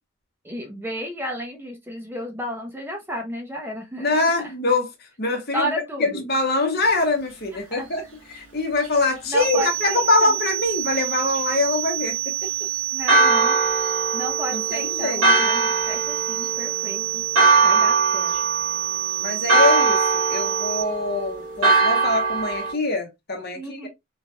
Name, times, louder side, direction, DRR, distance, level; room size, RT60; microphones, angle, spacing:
voice 1, 0.4-4.5 5.5-6.2 7.5-7.9 9.3-10.4 12.9-13.6 14.1-17.2 17.6-18.4 23.5-23.9, equal, 10° right, 0.6 m, -32 dB
voice 2, 4.0-4.9 5.2-5.7 6.0-8.0 8.3-12.3 14.5-15.5 19.2-20.0 20.3-23.9, left 2 dB, 50° left, 0.9 m, -24 dB
sound 1, 9.4-20.8, right 16 dB, 65° right, 0.6 m, -28 dB
Church bell, 13.1-22.7, right 3 dB, 85° right, 1.3 m, -21 dB
3.2 x 2.7 x 2.2 m
head